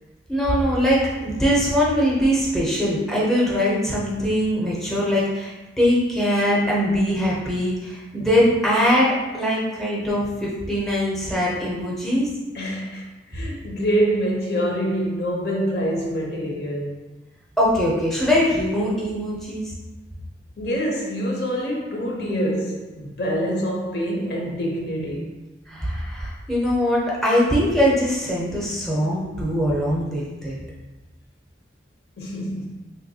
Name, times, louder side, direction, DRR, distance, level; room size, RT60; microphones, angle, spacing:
voice 1, 0.3-12.3 17.6-19.7 25.7-30.6, equal, ahead, 0.6 m, -22 dB
voice 2, 12.5-16.9 20.6-25.3 32.2-32.7, equal, 60° left, 0.6 m, -25 dB
3.4 x 2.6 x 2.7 m
head